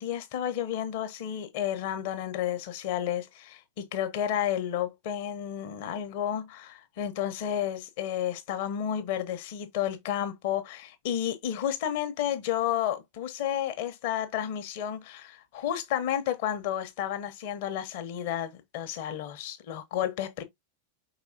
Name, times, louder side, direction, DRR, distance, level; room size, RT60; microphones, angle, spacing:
voice 1, 0.0-20.4, left 10 dB, 50° left, 1.0 m, -31 dB
4.7 x 4.0 x 2.8 m
figure-of-eight pair, 90°, 0 cm